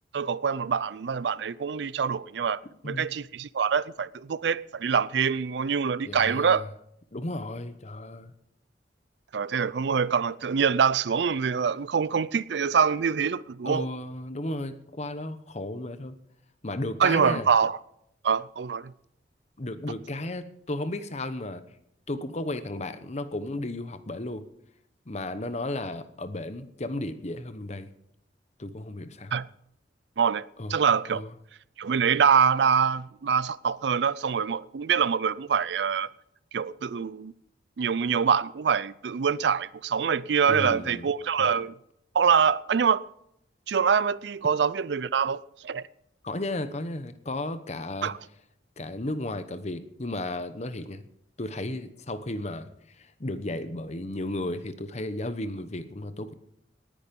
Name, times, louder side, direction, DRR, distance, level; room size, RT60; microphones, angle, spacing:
voice 1, 0.1-6.6 9.3-13.9 17.0-17.8 18.2-18.9 29.3-29.5 30.2-31.2 31.8-36.1 36.5-37.3 37.8-41.8 42.1-43.0 43.7-45.8 48.0-48.2, right 6 dB, 70° right, 0.4 m, -25 dB
voice 2, 6.0-6.7 7.1-8.3 13.6-16.1 16.6-17.5 19.6-21.6 22.1-24.4 25.1-27.9 28.6-29.3 30.6-30.8 31.1-31.3 40.5-41.1 41.4-41.5 46.2-48.1 48.8-51.0 51.4-52.7 53.0-56.3, left 1 dB, 40° left, 1.0 m, -34 dB
18.5 x 10.0 x 5.3 m
head